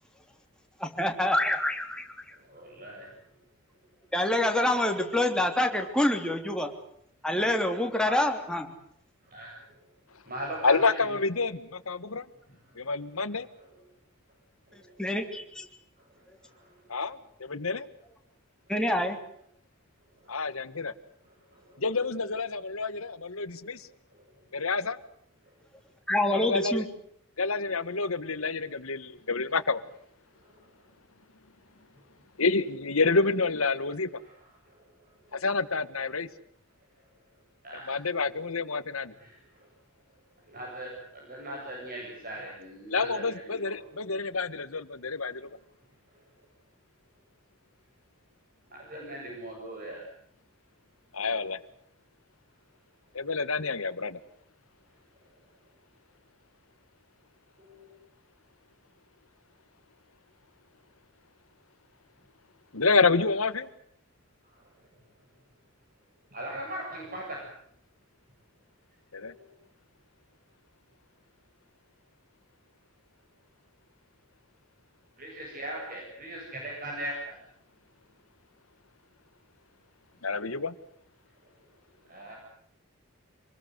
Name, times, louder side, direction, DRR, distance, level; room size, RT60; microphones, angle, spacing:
voice 1, 0.8-2.3 4.1-6.7 7.2-8.7 15.0-15.7 18.7-19.2 26.1-26.8, left 1 dB, 5° left, 3 dB, 3.2 m, -26 dB
voice 2, 2.5-3.1 8.0-8.2 9.3-9.6 10.3-10.8 16.5-16.6 20.2-20.3 21.7-21.8 37.6-38.0 39.2-39.3 40.5-43.4 48.7-50.0 57.6-57.9 66.3-67.4 69.3-69.4 75.2-77.3 82.1-82.4, right 1 dB, 40° right, -1 dB, 7.9 m, -39 dB
voice 3, 10.6-12.3 12.7-13.5 16.9-17.9 20.3-20.9 21.8-23.9 24.5-25.0 26.3-26.8 27.4-29.8 32.4-34.1 35.3-36.3 37.9-39.1 42.9-45.5 51.1-51.6 53.1-54.2 62.7-63.7 69.1-69.3 80.2-80.7, left 4 dB, 80° left, 13 dB, 1.6 m, -28 dB
27.0 x 21.0 x 8.0 m, 0.70 s
head